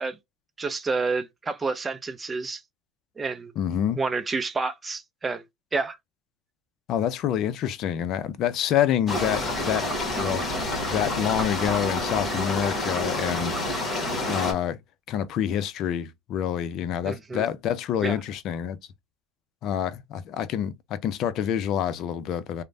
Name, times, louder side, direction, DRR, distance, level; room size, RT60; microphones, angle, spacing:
voice 1, 0.6-2.6 3.2-3.5 3.9-5.4 5.7-6.0 17.0-17.5 18.0-18.2, right 4 dB, 20° right, 0.4 m, -29 dB
voice 2, 3.6-4.0 6.9-9.9 10.2-10.4 10.9-14.8 15.1-18.8 19.6-22.6, left 10 dB, 55° left, 0.5 m, -27 dB
sound 1, 9.1-14.5, left 1 dB, 25° left, 1.3 m, -28 dB
3.1 x 2.1 x 2.5 m
supercardioid pair, 100°, 0 cm